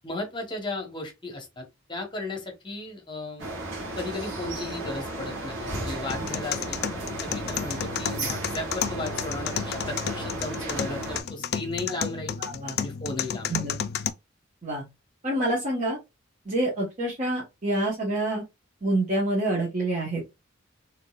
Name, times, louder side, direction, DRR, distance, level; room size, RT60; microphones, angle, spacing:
voice 1, 0.0-3.5 4.0-6.8 7.2-12.4 12.8-13.7, left 2 dB, 25° left, 1.0 m, -35 dB
sound 1, 3.4-11.2, right 1 dB, 70° right, 1.3 m, -34 dB
sound 2, 6.1-14.1, left 8 dB, 55° left, 0.4 m, -32 dB
voice 2, 12.4-12.8 13.5-13.8 14.6-14.9 15.2-16.0 16.4-18.4 18.8-20.2, right 1 dB, 40° right, 1.2 m, -27 dB
3.7 x 2.9 x 2.4 m
head